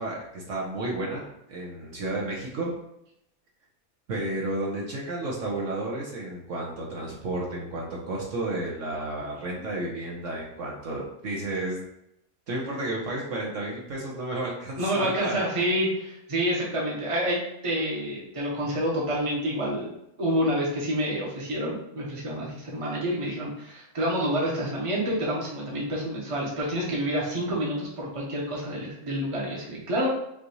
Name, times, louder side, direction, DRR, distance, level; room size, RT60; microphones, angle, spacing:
voice 1, 0.0-2.7 4.1-11.8 12.5-15.5, right 2 dB, 60° right, -3 dB, 1.2 m, -32 dB
voice 2, 14.8-30.1, equal, 25° right, -4 dB, 1.0 m, -28 dB
5.7 x 2.6 x 3.0 m, 0.80 s
omnidirectional pair, 1.5 m